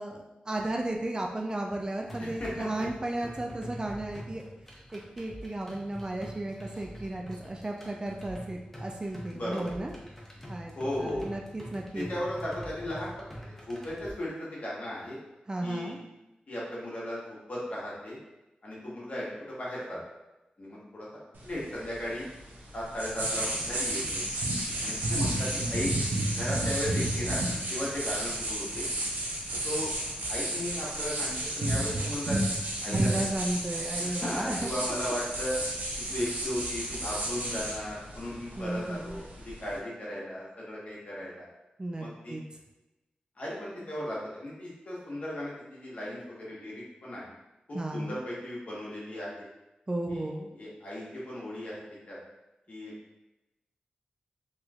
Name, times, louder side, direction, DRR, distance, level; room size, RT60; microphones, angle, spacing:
voice 1, 0.0-4.4 4.9-9.9 10.5-10.7 11.0-12.1 15.5-16.0 32.9-34.7 38.6-39.2 41.8-42.4 47.7-48.1 49.9-50.5, right 1 dB, 30° right, 1 dB, 0.4 m, -34 dB
sound 1, 2.1-14.1, equal, 10° left, 0.8 m, -45 dB
voice 2, 2.2-2.7 9.3-9.7 10.7-11.3 11.9-13.3 13.7-15.2 15.6-16.0 16.5-18.2 18.6-20.0 20.6-21.1 21.4-22.3 22.7-24.2 24.8-25.9 26.4-27.4 27.7-28.9 29.6-29.9 30.3-32.4 32.8-33.3 34.0-35.6 36.1-41.5 42.0-42.4 43.4-47.2 47.7-49.5 50.1-52.2 52.7-52.9, left 1 dB, 55° left, -6 dB, 1.2 m, -36 dB
sound 2, 21.3-39.8, right 1 dB, 75° right, 0.6 m, -32 dB
3.1 x 3.0 x 2.4 m, 0.99 s
cardioid pair, 65°, 3 cm